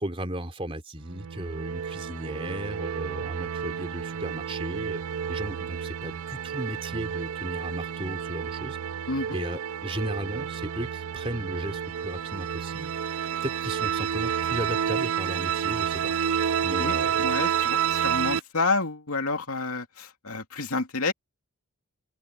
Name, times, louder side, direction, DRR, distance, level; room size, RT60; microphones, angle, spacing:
voice 1, 0.0-5.0 5.3-8.8 9.3-16.1 16.6-17.3, right 1 dB, 25° right, 3.2 m, -35 dB
sound 1, 1.0-18.4, right 8 dB, 70° right, 0.4 m, -30 dB
voice 2, 16.8-21.1, left 3 dB, 75° left, 2.7 m, -29 dB
open air
head